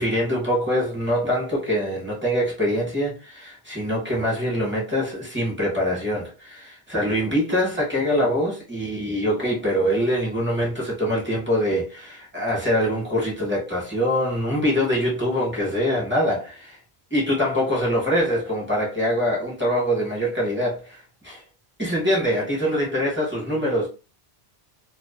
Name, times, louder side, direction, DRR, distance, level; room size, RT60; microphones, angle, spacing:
voice 1, 0.0-16.5 17.1-21.4 21.8-23.9, equal, 10° right, 0.9 m, -24 dB
2.4 x 2.3 x 2.4 m
omnidirectional pair, 1.1 m